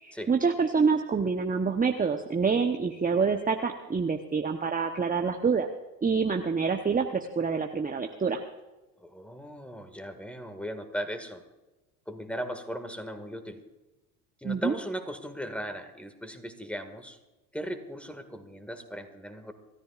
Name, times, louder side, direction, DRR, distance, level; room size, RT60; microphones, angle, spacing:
voice 1, 0.0-5.7 6.0-8.4 14.4-14.7, right 5 dB, 15° right, 4 dB, 1.0 m, -27 dB
voice 2, 9.0-11.4 12.1-13.6 14.4-17.2 17.5-19.5, equal, ahead, 8 dB, 2.0 m, -37 dB
27.5 x 13.5 x 2.5 m, 1.1 s
hypercardioid pair, 65°, 49 cm